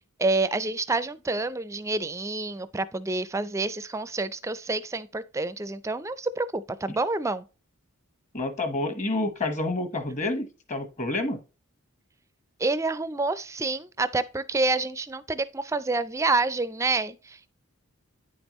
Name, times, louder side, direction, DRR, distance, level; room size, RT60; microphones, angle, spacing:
voice 1, 0.2-7.4 12.6-17.5, right 3 dB, 15° right, 0.4 m, -28 dB
voice 2, 8.3-11.4, left 2 dB, 35° left, 1.1 m, -29 dB
9.5 x 5.3 x 3.0 m
head